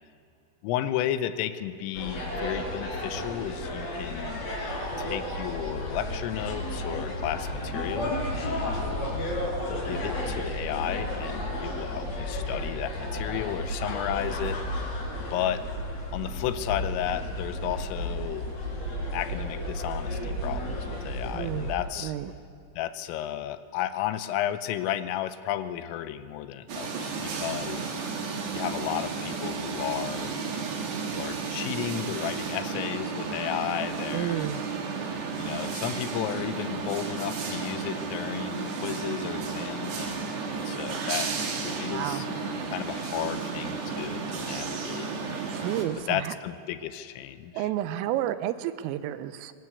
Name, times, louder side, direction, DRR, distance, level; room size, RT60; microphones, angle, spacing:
voice 1, 0.6-4.5 5.0-9.0 9.7-14.6 15.3-15.6 16.1-18.4 19.1-22.1 22.8-28.0 28.5-30.4 31.1-34.5 35.4-41.3 41.6-42.3 42.7-45.8 46.1-47.7, left 11 dB, 80° left, 12 dB, 3.3 m, -33 dB
sound 1, 1.9-21.7, left 1 dB, 35° left, 5.0 m, -32 dB
voice 2, 21.3-21.7 22.0-22.3 34.1-34.6 41.9-42.2 45.5-46.3 47.5-49.5, right 13 dB, 80° right, 12 dB, 3.4 m, -31 dB
sound 2, 26.7-45.8, right 5 dB, 60° right, 4.1 m, -33 dB
24.0 x 20.5 x 8.3 m, 2.3 s
omnidirectional pair, 6.0 m